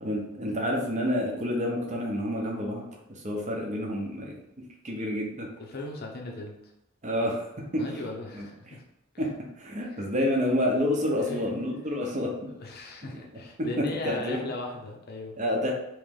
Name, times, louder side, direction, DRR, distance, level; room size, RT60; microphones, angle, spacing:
voice 1, 0.0-4.3 4.8-5.5 7.0-7.9 8.3-8.5 9.2-12.5 13.0-13.2 13.6-14.4 15.4-15.7, left 1 dB, 35° right, -1 dB, 0.8 m, -29 dB
voice 2, 5.6-6.6 7.8-8.8 9.9-10.0 11.3-11.4 12.5-15.4, left 2 dB, 50° left, 1 dB, 0.7 m, -37 dB
3.2 x 3.1 x 3.7 m, 0.88 s
head